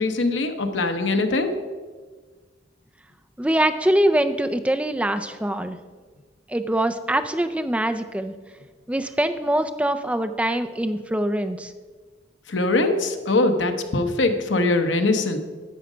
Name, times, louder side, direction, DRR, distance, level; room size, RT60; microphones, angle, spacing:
voice 1, 0.0-1.5 12.5-15.4, left 2 dB, 85° left, 7 dB, 0.9 m, -22 dB
voice 2, 3.4-5.8 6.5-8.3 8.9-11.7, right 1 dB, 5° right, 8 dB, 0.4 m, -23 dB
10.0 x 6.5 x 5.0 m, 1.4 s
head